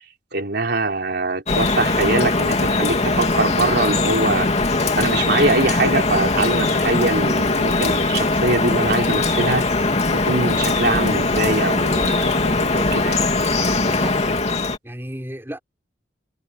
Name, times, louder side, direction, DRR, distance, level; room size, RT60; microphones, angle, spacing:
voice 1, 0.3-4.5 4.9-9.7 10.1-13.2, right 2 dB, 60° right, 4.2 m, -23 dB
Drip, 1.5-14.8, left 3 dB, 35° left, 2.7 m, -20 dB
voice 2, 13.7-14.4 14.8-15.6, equal, 15° right, 4.6 m, -34 dB
head